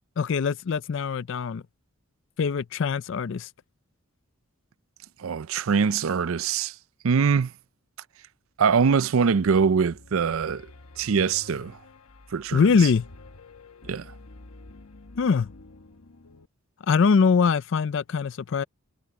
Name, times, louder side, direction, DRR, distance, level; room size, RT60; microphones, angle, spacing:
voice 1, 0.2-1.6 2.4-3.5 12.5-13.1 15.2-15.5 16.9-18.6, left 5 dB, 60° left, 0.4 m, -22 dB
voice 2, 5.2-6.7 7.0-7.5 8.6-10.7 11.0-11.8 12.3-12.6 13.8-14.1, right 6 dB, 70° right, 0.5 m, -23 dB
Piano, 9.4-16.4, left 2 dB, 90° left, 1.2 m, -48 dB
head